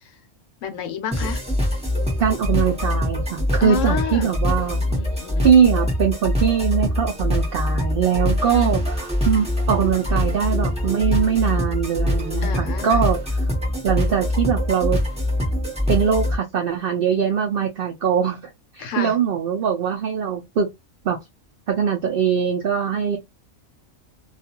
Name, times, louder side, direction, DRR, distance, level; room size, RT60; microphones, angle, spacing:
voice 1, 0.6-1.4 3.6-4.4 4.9-5.5 8.4-8.9 12.4-13.0 18.8-19.1, left 7 dB, 70° left, 0.9 m, -30 dB
sound 1, 1.1-16.3, left 1 dB, 5° right, 0.6 m, -23 dB
voice 2, 2.2-4.8 5.4-13.2 13.8-15.0 15.9-18.4 18.7-20.7 21.0-21.2 21.7-23.2, right 7 dB, 75° right, 0.5 m, -21 dB
2.4 x 2.3 x 2.8 m
omnidirectional pair, 1.5 m